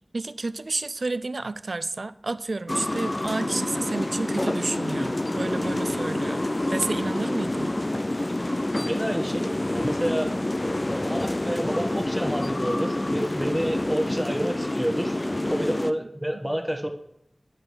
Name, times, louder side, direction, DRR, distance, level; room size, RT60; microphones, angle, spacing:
voice 1, 0.1-7.8 15.5-15.6 16.5-16.6, right 3 dB, 80° right, 0.4 m, -31 dB
sound 1, 2.7-15.9, left 1 dB, 40° left, 0.4 m, -27 dB
voice 2, 8.8-10.3 11.0-15.2 15.5-16.9, equal, 5° right, 1.3 m, -29 dB
10.5 x 5.0 x 4.8 m
wide cardioid pair, 45°, 0 cm